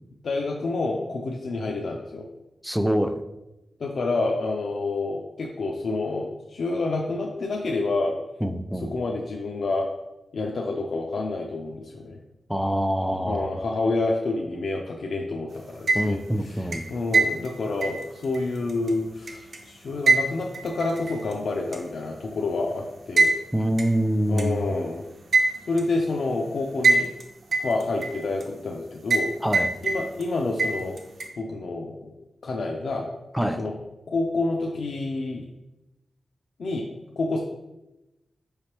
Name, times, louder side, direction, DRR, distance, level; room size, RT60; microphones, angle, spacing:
voice 1, 0.2-2.3 3.8-8.2 8.8-9.9 10.3-12.2 13.3-23.3 24.3-25.1 25.7-27.1 27.6-29.3 29.8-31.0 31.4-32.1 32.4-33.1 33.6-33.7 34.1-35.4 36.6-36.9 37.2-37.4, left 3 dB, 75° left, 0 dB, 0.4 m, -28 dB
voice 2, 2.6-3.2 8.4-8.9 12.5-13.5 15.9-16.8 23.5-24.6 29.4-29.7 33.3-33.6, equal, ahead, 9 dB, 0.3 m, -25 dB
sound 1, 15.7-16.3 16.7-19.6 20.1-21.3 21.7-21.8 23.2-23.4 23.8-23.9 24.4-24.5 25.3-25.9 26.8-27.2 27.5-28.4 29.1-29.3 29.5-30.3 30.6-31.3, right 3 dB, 70° right, 0.6 m, -23 dB
5.0 x 3.2 x 2.9 m, 0.97 s
cardioid pair, 65°, 0 cm